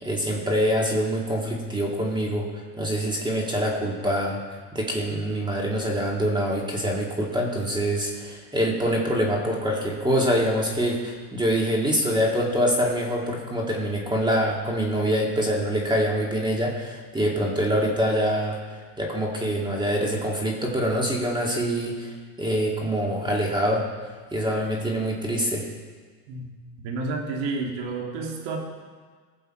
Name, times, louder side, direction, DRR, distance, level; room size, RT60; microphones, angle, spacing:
voice 1, 0.0-2.5 2.8-4.4 4.7-22.1 22.4-23.8 24.3-25.6, equal, 10° right, -2 dB, 2.3 m, -25 dB
voice 2, 26.8-28.6, right 3 dB, 60° right, 1 dB, 2.7 m, -30 dB
20.0 x 7.1 x 4.5 m, 1.5 s
supercardioid pair, 115°, 50 cm